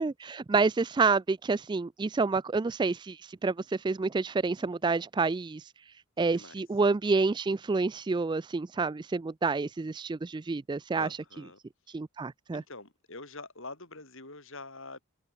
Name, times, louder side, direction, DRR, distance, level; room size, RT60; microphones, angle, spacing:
voice 1, 0.0-5.7 6.2-11.1 11.9-12.6, right 4 dB, 20° right, 0.3 m, -28 dB
voice 2, 6.2-6.6 10.9-11.6 12.5-15.0, left 3 dB, 60° left, 6.8 m, -45 dB
head